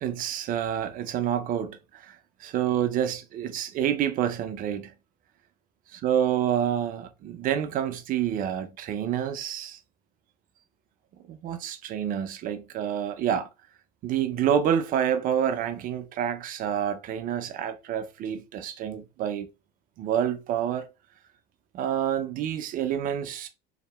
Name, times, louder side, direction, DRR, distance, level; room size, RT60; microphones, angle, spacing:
voice 1, 0.0-4.9 5.9-9.8 11.3-13.5 14.0-19.5 20.0-20.8 21.7-23.5, right 9 dB, 45° right, 0.4 m, -28 dB
2.7 x 2.0 x 2.2 m
hypercardioid pair, 75°, 20 cm